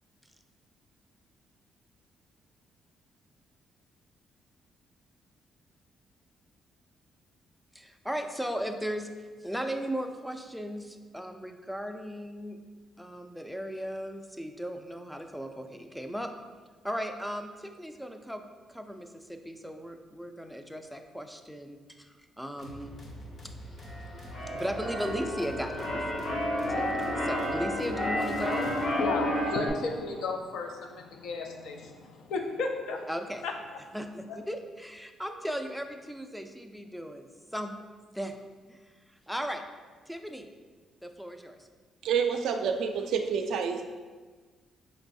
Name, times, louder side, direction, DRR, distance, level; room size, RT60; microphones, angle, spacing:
voice 1, 7.7-9.1 9.4-12.6 13.0-16.3 16.8-18.4 18.7-23.0 24.5-26.3 26.7-28.7 33.1-33.4 33.9-37.3 37.5-37.7 38.1-38.3 38.7-38.8 39.3-39.6 40.1-40.5 41.0-41.6, equal, ahead, 6 dB, 0.3 m, -36 dB
sound 1, 22.6-29.3, equal, 45° left, 0.7 m, -45 dB
Keyboard (musical), 23.8-29.7, left 1 dB, 65° left, 1.2 m, -31 dB
voice 2, 28.5-33.1 33.4-33.5, left 3 dB, 80° left, 3 dB, 0.5 m, -34 dB
voice 3, 42.0-43.8, right 6 dB, 80° right, 5 dB, 0.3 m, -28 dB
4.5 x 3.1 x 2.6 m, 1.4 s
cardioid pair, 90°, 0 cm